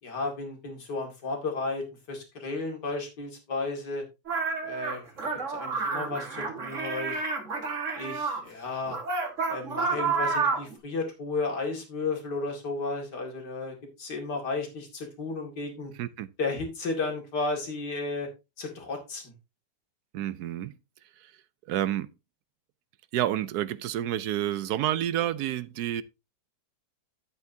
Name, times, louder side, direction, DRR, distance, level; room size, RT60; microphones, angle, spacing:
voice 1, 0.0-4.0 4.6-5.1 5.5-7.2 8.0-9.0 9.5-15.9 16.4-18.3 18.6-19.3, left 3 dB, 75° left, 2.8 m, -33 dB
sound 1, 4.3-8.4 8.9-10.7, right 4 dB, 45° right, 2.0 m, -30 dB
voice 2, 20.1-20.8 21.2-21.3 21.7-22.1 23.1-26.0, right 12 dB, 75° right, 1.1 m, -29 dB
10.5 x 8.2 x 2.7 m
omnidirectional pair, 1.8 m